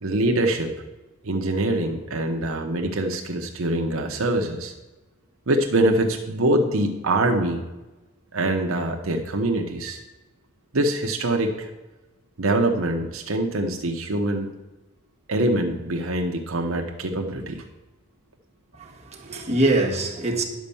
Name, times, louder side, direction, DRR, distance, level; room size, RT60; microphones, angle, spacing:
voice 1, 0.0-0.7 1.2-4.7 5.5-7.6 8.3-10.0 10.7-11.7 12.4-14.5 15.3-17.6, right 1 dB, 75° right, 0.9 m, -24 dB
voice 2, 18.7-20.4, right 2 dB, 30° right, 1.4 m, -23 dB
10.5 x 5.4 x 7.0 m
head